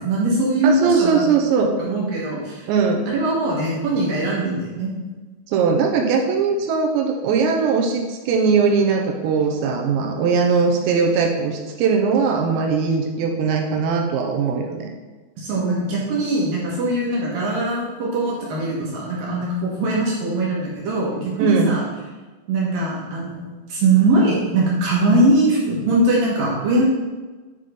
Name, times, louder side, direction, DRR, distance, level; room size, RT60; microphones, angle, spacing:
voice 1, 0.0-1.2 1.8-2.7 3.1-4.9 15.4-21.8 22.5-26.9, right 2 dB, 65° right, -4 dB, 2.6 m, -21 dB
voice 2, 0.6-1.8 2.7-3.1 5.5-14.9 21.4-21.8, right 5 dB, 80° right, 2 dB, 3.0 m, -20 dB
9.3 x 3.6 x 5.1 m, 1.3 s
omnidirectional pair, 5.2 m